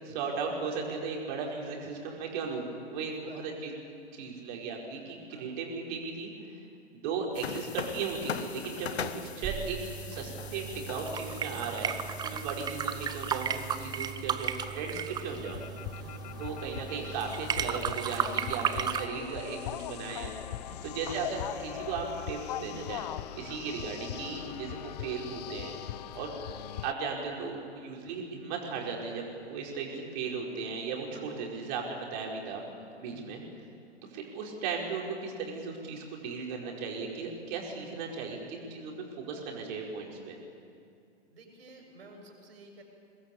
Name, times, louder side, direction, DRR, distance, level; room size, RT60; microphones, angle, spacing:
voice 1, 0.0-3.7 4.2-6.3 6.9-9.8 10.1-12.0 12.2-15.6 16.4-20.6 20.9-23.1 23.4-25.7 26.1-26.3 26.8-32.6 33.0-33.4 34.1-40.4, right 5 dB, 40° right, 0 dB, 5.0 m, -36 dB
voice 2, 3.1-3.4 5.3-5.5 12.3-12.5 14.9-15.3 15.9-16.2 20.7-21.0 23.4-23.6 26.1-26.2 31.1-31.3 33.0-33.4 41.3-42.8, right 2 dB, 60° right, 2 dB, 6.4 m, -51 dB
sound 1, 7.3-14.1, left 7 dB, 65° left, 1.4 m, -41 dB
sound 2, 9.4-19.1, right 8 dB, 10° right, 0.7 m, -35 dB
sound 3, 15.3-26.9, left 13 dB, 35° left, 0.6 m, -40 dB
23.0 x 20.0 x 8.6 m, 2.5 s
figure-of-eight pair, 110°, 35 cm